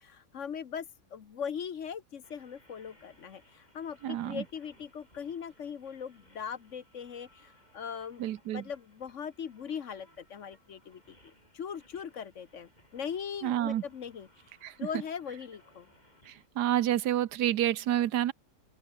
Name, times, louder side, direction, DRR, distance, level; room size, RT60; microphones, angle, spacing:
voice 1, 0.0-8.3 8.5-14.5 14.8-15.9, left 7 dB, 55° left, 1.2 m, -40 dB
sound 1, 2.2-16.5, left 1 dB, 25° left, 7.7 m, -64 dB
voice 2, 4.0-4.4 8.2-8.6 13.4-13.8 14.6-14.7 16.3-18.3, right 12 dB, 80° right, 1.4 m, -29 dB
open air
omnidirectional pair, 1.7 m